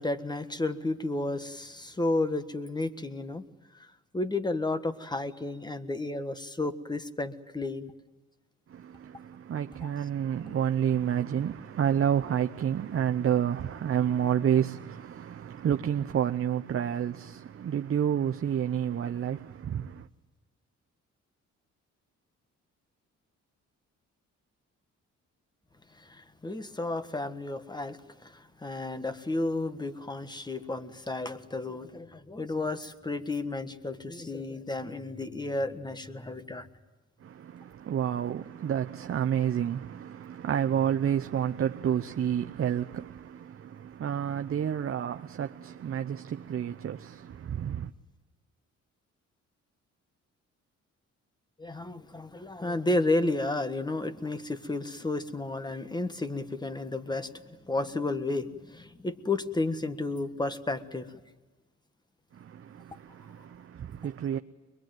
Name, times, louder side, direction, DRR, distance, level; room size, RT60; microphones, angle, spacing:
voice 1, 0.0-3.4 3.7-3.9 4.1-7.9 9.8-9.9 10.4-10.6 26.0-36.7 51.6-61.2, left 2 dB, 15° left, 1.5 m, -32 dB
voice 2, 8.7-20.1 37.2-47.9 62.3-64.4, right 9 dB, 45° right, 0.7 m, -30 dB
22.5 x 22.0 x 9.2 m
cardioid pair, 85°, 31 cm